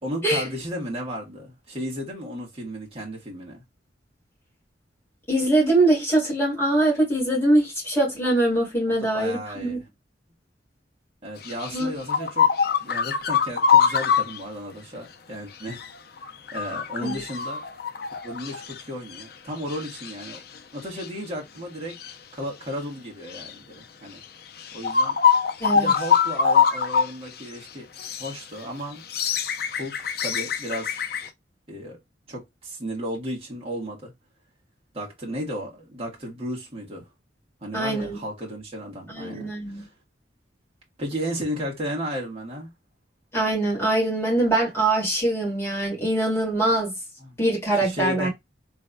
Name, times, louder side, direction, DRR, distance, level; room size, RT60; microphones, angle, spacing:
voice 1, 0.0-3.6 8.9-9.8 11.2-12.5 12.8-15.9 16.5-17.6 18.2-20.4 20.7-22.0 22.3-24.2 24.7-25.2 25.7-27.9 28.2-29.1 29.8-31.0 31.7-32.0 32.3-34.1 34.9-37.1 37.6-39.9 41.0-42.7 47.2-47.4 47.8-48.3, equal, 30° right, 1.5 m, -34 dB
voice 2, 5.3-9.8 11.7-11.9 17.0-17.2 25.6-25.9 37.7-38.2 39.1-39.8 43.3-47.0 47.4-48.3, right 1 dB, 15° left, 2.3 m, -23 dB
sound 1, 11.4-14.4 15.7-15.9 16.2-18.8 19.1-19.2 19.7-20.4 21.0-21.1 21.9-22.1 23.3-23.5 24.2-24.3 24.6-27.1 27.4-27.5 28.0-28.3 28.9-31.3, left 7 dB, 55° left, 0.6 m, -23 dB
3.9 x 3.3 x 2.2 m
head